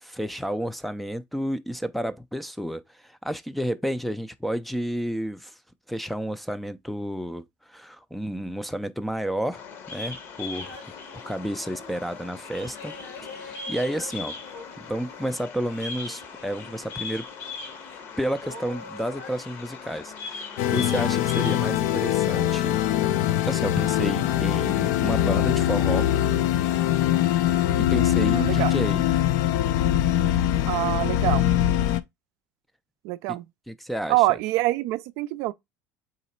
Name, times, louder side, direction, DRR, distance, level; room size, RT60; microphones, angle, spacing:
voice 1, 0.0-5.6 5.9-9.6 9.9-10.8 11.3-12.9 13.3-14.3 14.8-17.3 18.2-22.8 23.5-26.1 27.8-29.1 33.3-33.4 33.7-34.2, equal, ahead, 0.4 m, -31 dB
Bird vocalization bird call bird song, 9.5-21.7, left 4 dB, 50° left, 0.9 m, -39 dB
sound 1, 10.6-26.8, left 3 dB, 90° left, 2.3 m, -47 dB
sound 2, 20.6-32.0, left 12 dB, 70° left, 0.4 m, -22 dB
voice 2, 28.3-28.7 30.7-31.4 33.0-33.4 34.1-35.5, right 18 dB, 70° right, 0.4 m, -25 dB
4.0 x 3.0 x 4.2 m
cardioid pair, 130°, 5 cm